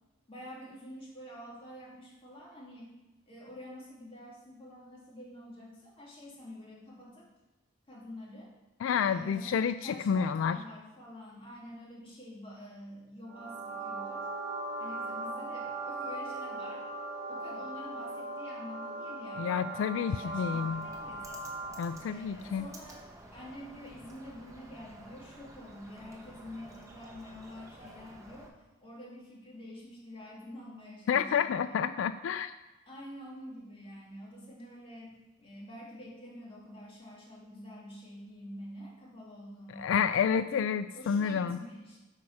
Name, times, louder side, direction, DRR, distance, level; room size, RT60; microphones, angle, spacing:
voice 1, 0.3-2.9 3.3-7.3 7.9-8.5 9.1-14.3 14.8-16.9 17.3-21.6 22.0-31.8 32.9-40.1 40.9-42.0, left 1 dB, 30° left, -4 dB, 2.4 m, -48 dB
voice 2, 8.8-10.6 19.4-20.8 21.8-22.7 31.1-32.5 39.8-41.6, left 7 dB, 80° left, 12 dB, 0.3 m, -29 dB
sound 1, 13.3-22.1, right 2 dB, 55° right, 1.3 m, -39 dB
Bird, 20.3-28.5, right 1 dB, 15° right, 1.1 m, -51 dB
8.3 x 4.9 x 5.8 m, 1.1 s
head